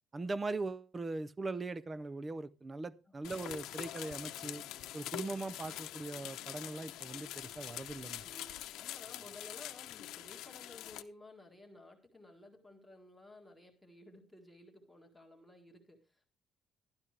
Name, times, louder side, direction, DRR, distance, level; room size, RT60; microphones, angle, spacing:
voice 1, 0.1-4.6 4.9-8.2, right 3 dB, 15° right, 18 dB, 0.5 m, -40 dB
sound 1, 3.2-11.0, left 13 dB, 85° left, 0.8 m, -45 dB
voice 2, 8.2-16.2, left 2 dB, ahead, 3 dB, 1.8 m, -55 dB
12.0 x 12.0 x 3.3 m, 0.31 s
cardioid pair, 180°, 0 cm